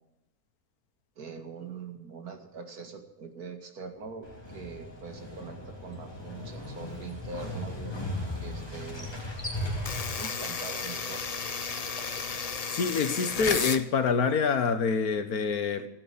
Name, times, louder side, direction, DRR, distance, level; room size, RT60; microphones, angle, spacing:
voice 1, 1.2-8.0 8.4-9.1 10.2-11.4, right 5 dB, 75° right, 2.6 m, -43 dB
sound 1, 3.8-14.3, left 2 dB, 30° right, 3.9 m, -56 dB
Motorcycle, 4.2-12.6, left 1 dB, 15° left, 3.0 m, -38 dB
sound 2, 9.8-13.8, left 5 dB, 35° left, 0.7 m, -33 dB
voice 2, 12.7-15.9, left 5 dB, 75° left, 1.7 m, -26 dB
16.5 x 8.5 x 8.6 m
omnidirectional pair, 1.6 m